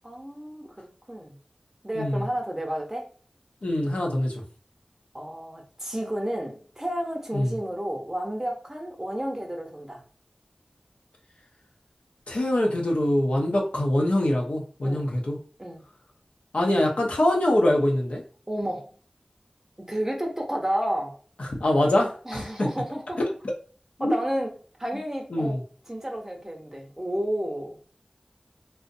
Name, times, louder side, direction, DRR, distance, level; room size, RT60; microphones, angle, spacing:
voice 1, 0.0-1.4 1.8-3.1 5.1-10.0 14.8-15.1 15.6-15.8 18.5-18.9 19.8-21.2 22.2-23.2 24.0-24.5 24.8-27.8, right 1 dB, 20° right, 0 dB, 0.7 m, -31 dB
voice 2, 3.6-4.3 7.3-7.5 12.3-15.4 16.5-18.2 21.4-22.7 24.0-24.1 25.3-25.6, left 1 dB, 80° left, 0 dB, 0.6 m, -24 dB
2.5 x 2.1 x 2.5 m, 0.41 s
wide cardioid pair, 55°, 2 cm